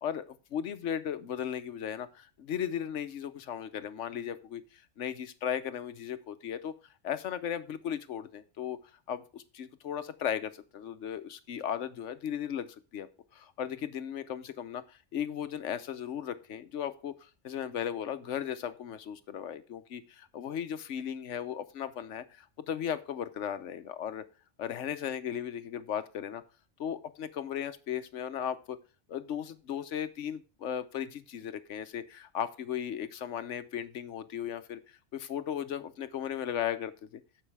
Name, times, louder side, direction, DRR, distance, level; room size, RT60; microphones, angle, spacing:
voice 1, 0.0-6.7 7.0-8.8 9.1-12.7 12.9-13.1 13.3-24.2 24.6-26.4 26.8-28.8 29.1-37.2, left 9 dB, 85° left, 11 dB, 1.1 m, -36 dB
14.5 x 5.5 x 3.4 m, 0.34 s
omnidirectional pair, 1.2 m